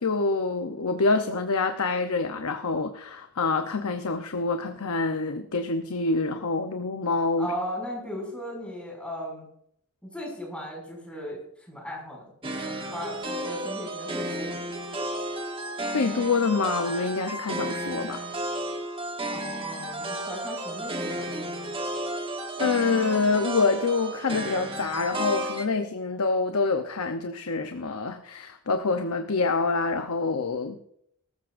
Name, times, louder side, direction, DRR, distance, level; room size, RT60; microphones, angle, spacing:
voice 1, 0.0-7.5 15.9-18.2 22.6-30.8, left 3 dB, 75° left, 6 dB, 0.8 m, -26 dB
voice 2, 7.4-9.5 10.0-12.3 12.7-14.6 19.3-21.7, equal, 5° left, -2 dB, 6.2 m, -37 dB
sound 1, 12.4-25.7, right 1 dB, 25° right, 1.2 m, -33 dB
18.5 x 15.0 x 2.6 m, 0.72 s
head